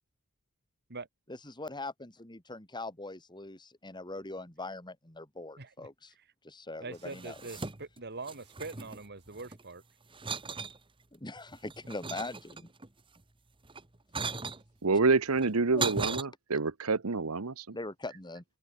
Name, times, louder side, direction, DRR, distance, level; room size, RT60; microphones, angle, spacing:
voice 1, 1.3-6.1 6.4-7.4 11.1-12.7 15.7-15.9 17.7-18.4, left 2 dB, 20° left, 3.7 m, -41 dB
voice 2, 5.6-5.9 6.8-9.8, right 3 dB, 50° right, 2.8 m, -43 dB
sound 1, 7.0-8.0 8.3-9.6 10.1-10.8 11.4-12.9 13.7-14.6 15.4-16.2, right 4 dB, 25° right, 1.3 m, -37 dB
voice 3, 14.8-17.8, right 4 dB, 80° right, 1.1 m, -27 dB
head